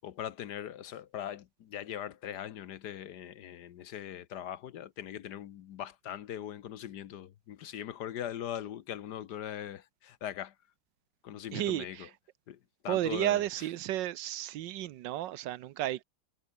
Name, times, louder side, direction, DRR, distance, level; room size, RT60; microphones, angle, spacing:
voice 1, 0.0-10.5 11.2-12.1 12.5-13.7, left 10 dB, 65° left, 1.4 m, -41 dB
voice 2, 11.5-12.1 12.9-16.0, right 13 dB, 80° right, 1.4 m, -32 dB
omnidirectional pair, 2.0 m